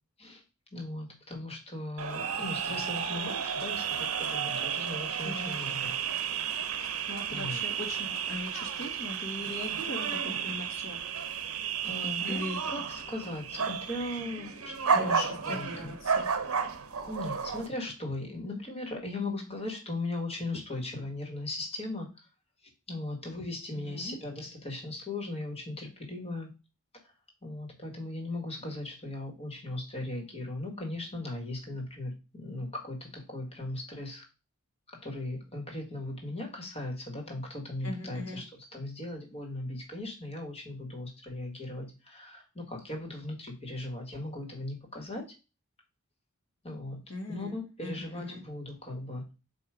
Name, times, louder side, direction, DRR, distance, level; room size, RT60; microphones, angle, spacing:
voice 1, 0.7-6.0 7.3-7.6 11.8-15.9 17.1-22.1 22.9-26.5 27.4-34.2 35.0-45.2 46.6-49.3, left 2 dB, 25° left, 1 dB, 1.7 m, -38 dB
sound 1, 2.0-17.7, right 7 dB, 70° right, 0.8 m, -32 dB
voice 2, 5.2-5.6 6.8-11.0 12.2-12.6 14.9-16.3 23.8-24.2 37.8-38.4 47.1-48.4, left 2 dB, 60° left, 2 dB, 1.4 m, -39 dB
7.9 x 2.8 x 4.9 m, 0.30 s
head